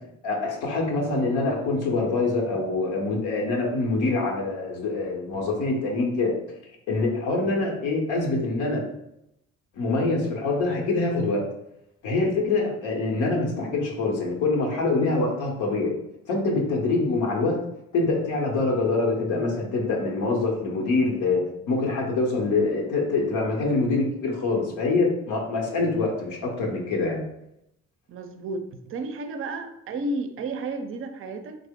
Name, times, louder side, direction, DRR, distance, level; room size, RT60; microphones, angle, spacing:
voice 1, 0.2-6.3 6.9-8.8 9.7-11.4 12.0-15.9 16.3-17.6 17.9-21.4 21.7-27.2, left 3 dB, 90° left, -1 dB, 0.9 m, -25 dB
voice 2, 28.1-31.6, right 2 dB, 45° right, 8 dB, 0.4 m, -32 dB
3.6 x 2.0 x 3.5 m, 0.81 s
cardioid pair, 90°, 30 cm